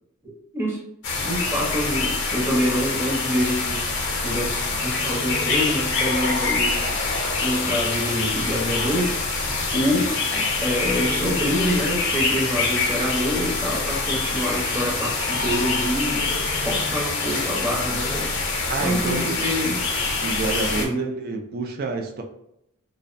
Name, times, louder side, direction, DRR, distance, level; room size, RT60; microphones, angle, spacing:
voice 1, 0.2-0.8 1.2-3.9 4.2-6.8 7.4-9.2 9.7-18.4 18.8-19.8 20.5-21.1, equal, 10° right, -4 dB, 0.7 m, -26 dB
sound 1, 1.0-20.9, left 3 dB, 55° left, 0.6 m, -25 dB
voice 2, 18.7-19.4 20.2-22.2, right 3 dB, 45° right, 3 dB, 0.3 m, -28 dB
2.5 x 2.0 x 2.5 m, 0.80 s
head